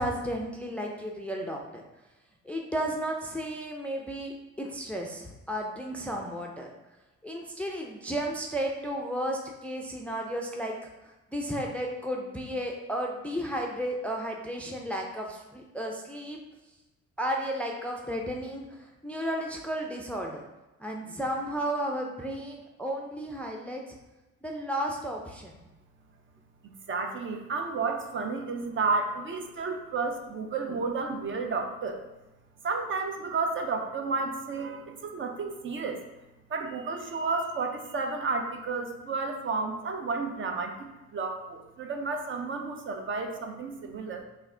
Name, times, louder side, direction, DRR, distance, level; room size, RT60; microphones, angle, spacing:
voice 1, 0.0-1.8 2.4-6.7 7.2-10.8 11.0-16.4 17.2-18.7 19.0-20.4 20.8-23.8 24.4-25.5, equal, 5° left, 0 dB, 0.4 m, -33 dB
voice 2, 26.9-32.0 32.6-36.0 36.5-44.2, right 4 dB, 40° right, 4 dB, 0.5 m, -32 dB
3.2 x 2.4 x 3.7 m, 1.0 s
cardioid pair, 90°, 30 cm